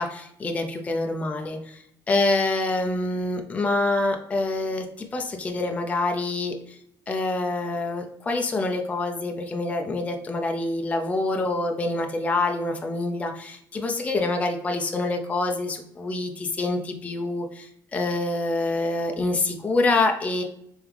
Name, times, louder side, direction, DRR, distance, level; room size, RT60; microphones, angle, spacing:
voice 1, 0.0-6.8 7.1-20.4, left 2 dB, 20° left, 3 dB, 0.4 m, -26 dB
3.5 x 3.4 x 3.1 m, 0.71 s
cardioid pair, 135°, 8 cm